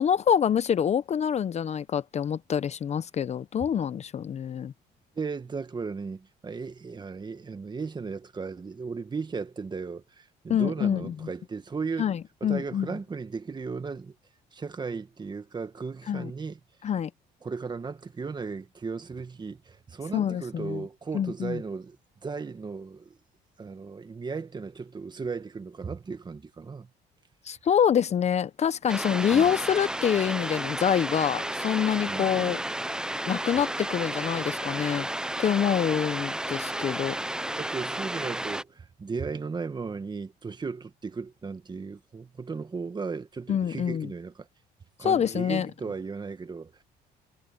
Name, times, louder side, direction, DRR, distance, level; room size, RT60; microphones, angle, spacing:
voice 1, 0.0-4.7 10.5-11.1 12.0-12.9 16.1-16.3 16.8-17.1 20.1-20.8 21.1-21.6 27.5-32.6 33.3-35.1 35.4-37.1 43.5-44.1 45.0-45.7, left 8 dB, 40° left, 0.8 m, -26 dB
voice 2, 5.2-12.1 12.4-14.2 14.5-16.6 17.4-22.0 22.2-23.2 23.6-26.9 29.3-29.5 32.0-32.6 37.6-44.5 45.0-46.8, right 4 dB, 25° right, 1.8 m, -36 dB
sound 1, 28.9-38.6, right 1 dB, 5° right, 0.6 m, -32 dB
cardioid pair, 110°, 17 cm